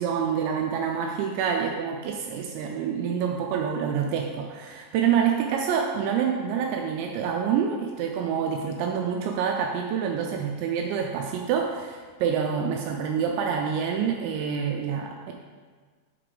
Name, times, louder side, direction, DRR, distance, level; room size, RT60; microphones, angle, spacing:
voice 1, 0.0-15.3, right 7 dB, 85° right, 1 dB, 2.7 m, -27 dB
6.6 x 4.9 x 3.8 m, 1.5 s
omnidirectional pair, 5.5 m